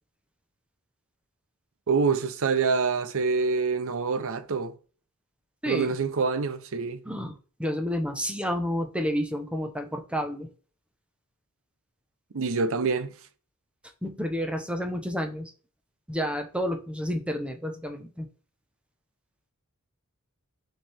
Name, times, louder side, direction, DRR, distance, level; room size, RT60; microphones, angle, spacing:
voice 1, 1.9-4.7 5.7-7.0 12.3-13.1, right 4 dB, 65° right, 0.7 m, -26 dB
voice 2, 5.6-6.0 7.0-10.5 14.0-15.5 16.1-18.3, equal, 5° right, 0.9 m, -30 dB
5.9 x 4.6 x 3.5 m
head